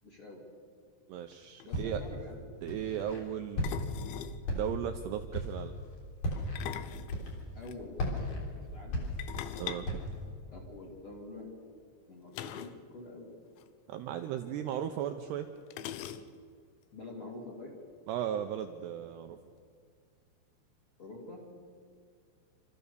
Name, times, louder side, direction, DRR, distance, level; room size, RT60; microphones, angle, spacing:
voice 1, 0.0-0.4 1.7-2.4 7.5-8.4 8.7-9.0 10.5-11.5 12.1-13.3 16.9-17.7 21.0-21.4, left 2 dB, 35° left, -2 dB, 3.0 m, -46 dB
voice 2, 1.1-2.0 2.6-3.6 4.5-5.7 9.6-9.9 13.9-15.5 18.1-19.4, right 10 dB, 85° right, 6 dB, 2.4 m, -36 dB
sound 1, 1.3-1.4 1.6-1.8 3.6-4.4 6.4-7.8 9.2-10.8 12.3-12.8 13.1-13.2 13.5-13.7 14.7-14.8 15.7-16.6, left 10 dB, 80° left, 2.9 m, -42 dB
Walk footsteps, 1.7-2.2 2.7-3.2 3.6-4.0 4.4-5.0 5.3-5.7 6.2-6.6 7.1-7.6 8.0-9.5 9.8-10.2, equal, 50° left, 5.0 m, -35 dB
28.0 x 14.0 x 6.8 m, 2.2 s
omnidirectional pair, 5.7 m